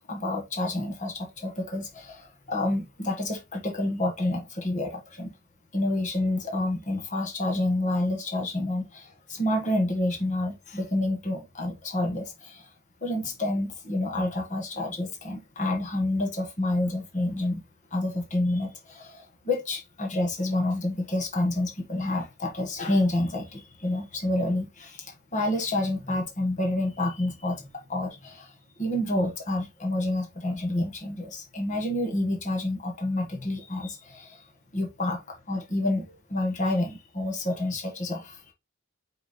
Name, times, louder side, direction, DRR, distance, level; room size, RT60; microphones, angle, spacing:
voice 1, 0.1-5.3 5.7-12.7 13.0-17.6 17.9-28.5 28.8-34.4 34.7-38.5, left 1 dB, 35° left, 1.5 m, -29 dB
5.1 x 4.6 x 4.2 m
head